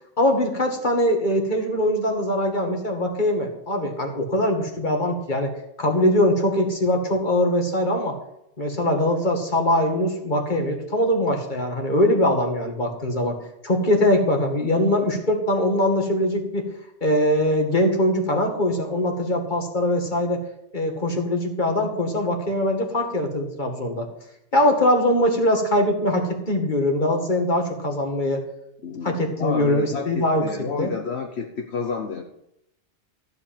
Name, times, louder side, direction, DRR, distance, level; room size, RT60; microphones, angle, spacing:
voice 1, 0.2-5.5 5.8-8.2 8.6-13.4 13.6-16.7 17.0-20.4 20.7-24.1 24.5-28.4 29.0-30.9, left 1 dB, 40° left, 2 dB, 2.2 m, -22 dB
voice 2, 28.8-32.2, left 5 dB, 65° left, 2 dB, 1.3 m, -30 dB
14.5 x 5.4 x 8.9 m, 0.79 s
omnidirectional pair, 1.2 m